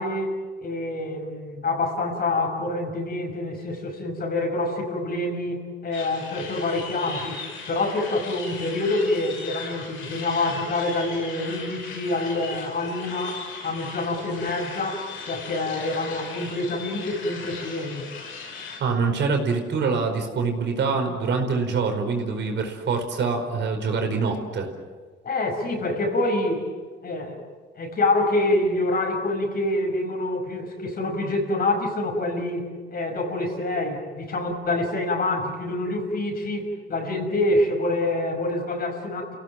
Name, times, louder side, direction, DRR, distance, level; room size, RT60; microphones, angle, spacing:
voice 1, 0.0-7.4 7.7-18.1 25.2-26.7 27.0-27.4 27.8-39.3, left 2 dB, 50° left, 4 dB, 5.8 m, -26 dB
sound 1, 5.9-18.8, left 5 dB, 85° left, 6.2 m, -38 dB
voice 2, 18.8-24.7, right 4 dB, 65° right, 4 dB, 4.8 m, -25 dB
29.5 x 17.0 x 9.0 m, 1.5 s
cardioid pair, 90°, 20 cm